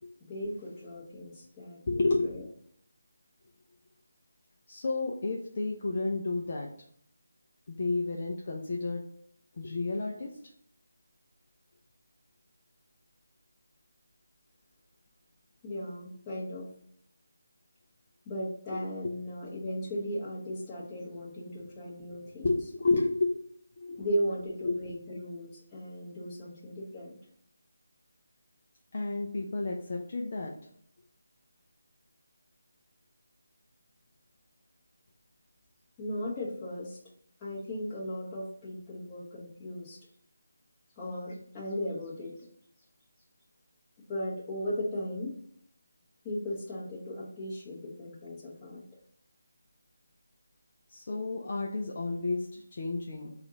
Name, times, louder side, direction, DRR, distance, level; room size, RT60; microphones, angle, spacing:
voice 1, 0.2-2.4 15.6-16.7 18.2-22.5 24.0-27.2 36.0-37.0 37.4-40.0 41.0-42.3 44.1-45.3 46.2-48.8, equal, 15° left, -7 dB, 1.3 m, -37 dB
voice 2, 1.9-2.3 4.7-6.7 7.7-9.0 9.6-10.3 19.0-19.1 22.0-22.2 22.4-23.3 23.8-24.1 24.6-24.7 28.9-30.5 50.9-53.3, left 3 dB, 45° left, -1 dB, 0.6 m, -31 dB
4.2 x 2.5 x 3.9 m, 0.64 s
figure-of-eight pair, 160°, 0 cm